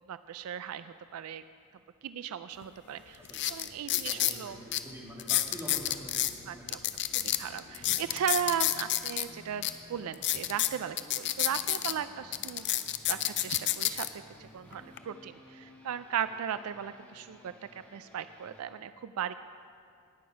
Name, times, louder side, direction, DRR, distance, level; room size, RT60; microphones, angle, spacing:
voice 1, 0.1-1.4 2.0-3.2 3.5-4.6 6.5-6.8 7.1-12.7 13.1-17.5 17.9-19.3, right 8 dB, 75° right, 13 dB, 0.3 m, -36 dB
sound 1, 2.6-2.7 3.3-4.4 4.7-4.8 5.2-6.3 6.7-9.3 9.6-9.7 10.1-11.9 12.3-14.1 14.7-15.0, left 13 dB, 55° left, 0.5 m, -29 dB
voice 2, 3.2-7.0 14.8-15.1, equal, 10° right, -5 dB, 2.4 m, -47 dB
sound 2, 7.1-18.6, left 1 dB, 5° left, 1.6 m, -55 dB
18.5 x 6.7 x 5.2 m, 2.2 s
head